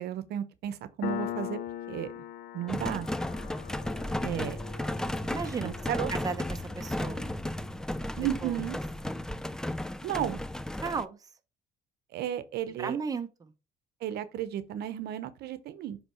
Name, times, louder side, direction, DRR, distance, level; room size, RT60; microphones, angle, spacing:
voice 1, 0.0-1.6 1.9-2.1 2.5-3.1 4.2-4.6 5.6-6.1 8.2-8.8 10.0-10.4 12.1-13.0 14.0-16.0, right 11 dB, 75° right, 0.8 m, -33 dB
Piano, 1.0-8.2, left 12 dB, 65° left, 0.5 m, -41 dB
sound 1, 2.7-11.0, left 1 dB, 5° left, 0.3 m, -34 dB
voice 2, 5.3-5.7 6.1-7.4 8.4-8.7 10.8-11.3 12.8-13.5, right 5 dB, 20° right, 0.8 m, -35 dB
7.3 x 3.4 x 4.4 m
cardioid pair, 110°, 17 cm